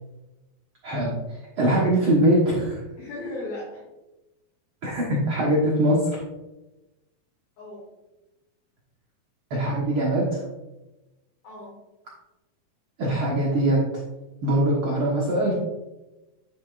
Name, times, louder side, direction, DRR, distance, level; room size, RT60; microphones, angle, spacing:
voice 1, 0.8-2.8 4.8-6.2 9.5-10.4 13.0-13.8 14.4-15.5, right 1 dB, 70° right, -4 dB, 1.2 m, -22 dB
voice 2, 2.6-3.8 7.6-7.9 11.4-11.8, left 2 dB, 60° left, -8 dB, 4.2 m, -37 dB
9.4 x 7.9 x 2.5 m, 1.0 s
omnidirectional pair, 4.4 m